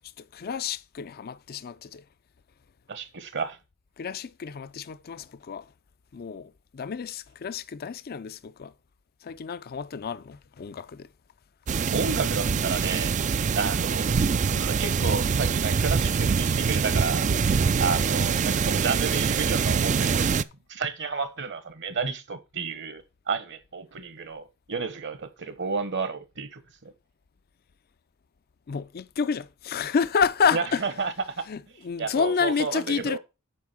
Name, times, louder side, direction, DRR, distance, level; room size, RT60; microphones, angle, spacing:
voice 1, 0.2-2.0 4.0-5.7 6.1-8.7 9.2-11.1 28.7-30.8 31.5-33.2, left 6 dB, 45° left, 0.5 m, -29 dB
voice 2, 2.9-3.6 11.9-13.2 13.6-17.3 17.8-20.3 20.7-26.9 30.5-31.4 32.0-33.2, right 5 dB, 60° right, 1.3 m, -31 dB
sound 1, 11.7-20.4, right 5 dB, 35° right, 0.4 m, -24 dB
8.4 x 4.8 x 6.1 m
head